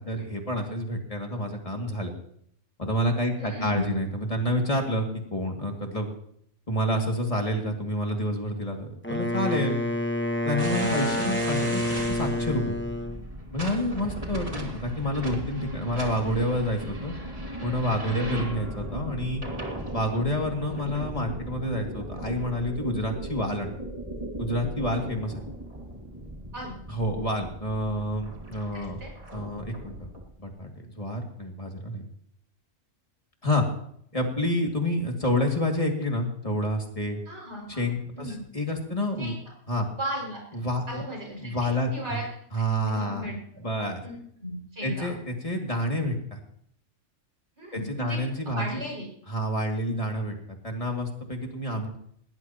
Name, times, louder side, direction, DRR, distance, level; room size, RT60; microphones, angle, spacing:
voice 1, 0.1-2.1 2.8-5.1 5.3-6.1 6.7-9.8 10.4-12.8 13.5-17.1 17.6-19.4 19.9-23.7 24.4-25.4 26.9-29.0 29.3-30.0 30.4-30.7 31.0-32.0 33.4-33.6 34.1-37.2 37.7-39.4 39.7-39.9 40.5-41.0 41.4-42.2 42.5-43.3 43.6-44.0 44.8-46.4 47.7-48.8 49.3-50.3 50.6-52.0, equal, 25° left, 1 dB, 2.5 m, -28 dB
voice 2, 3.4-4.0 18.2-18.4 26.5-26.7 28.7-29.1 37.3-37.8 38.2-38.4 39.2-39.4 40.0-40.4 40.9-42.3 42.5-43.4 44.0-45.1 47.6-48.2 48.4-49.1, equal, 55° right, -2 dB, 6.4 m, -36 dB
Wind instrument woodwind instrument, 9.0-13.2, left 1 dB, 10° left, 1.2 m, -28 dB
sound 1, 10.6-30.3, right 1 dB, 25° right, 2.5 m, -37 dB
20.5 x 18.0 x 3.0 m, 0.68 s
omnidirectional pair, 1.4 m